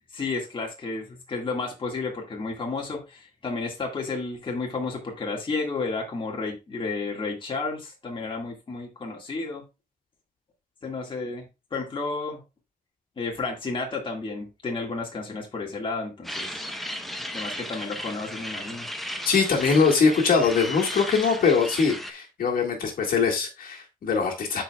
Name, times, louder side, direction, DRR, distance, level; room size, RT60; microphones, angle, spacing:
voice 1, 0.1-9.6 10.8-11.4 11.7-12.4 13.2-16.6 17.3-18.9, left 3 dB, 35° left, 1.8 m, -32 dB
sound 1, 16.2-22.1, equal, ahead, 0.9 m, -35 dB
voice 2, 19.2-24.6, left 5 dB, 70° left, 1.9 m, -22 dB
12.0 x 4.6 x 2.3 m
wide cardioid pair, 150°, 15 cm